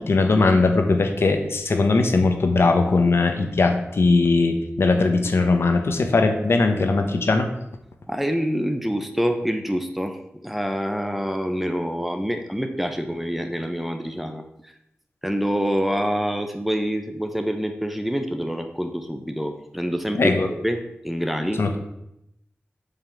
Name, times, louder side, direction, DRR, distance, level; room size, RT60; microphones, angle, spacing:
voice 1, 0.0-7.5 20.1-20.5 21.6-21.8, left 3 dB, 70° left, 5 dB, 1.2 m, -20 dB
voice 2, 8.1-14.4 15.2-21.6, equal, 5° right, 6 dB, 0.9 m, -26 dB
7.5 x 5.7 x 7.0 m, 0.82 s
wide cardioid pair, 105°, 4 cm